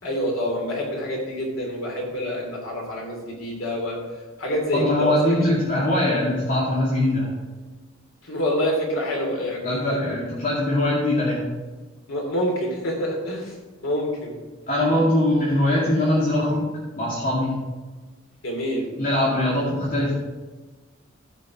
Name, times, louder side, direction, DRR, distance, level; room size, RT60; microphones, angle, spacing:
voice 1, 0.0-4.0 4.4-5.1 8.2-10.2 12.1-13.5 13.8-14.4 18.4-18.9, equal, 75° left, 0 dB, 3.0 m, -27 dB
voice 2, 4.7-7.3 9.6-11.4 14.7-17.6 19.0-20.1, left 1 dB, 45° left, -8 dB, 2.3 m, -22 dB
14.5 x 5.4 x 4.7 m, 1.3 s
head